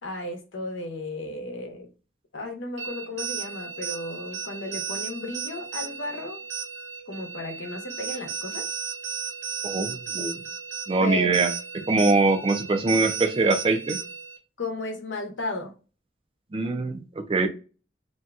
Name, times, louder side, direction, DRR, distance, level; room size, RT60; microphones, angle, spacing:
voice 1, 0.0-1.9 2.3-6.4 7.1-8.7 11.0-11.3 14.6-15.7, left 2 dB, 90° left, 4 dB, 0.9 m, -34 dB
sound 1, 2.8-14.4, right 6 dB, 70° right, 0.7 m, -35 dB
voice 2, 9.6-10.4 10.9-11.5 11.9-14.0 16.5-17.5, right 3 dB, 30° right, 7 dB, 0.4 m, -23 dB
2.7 x 2.2 x 3.5 m, 0.34 s
head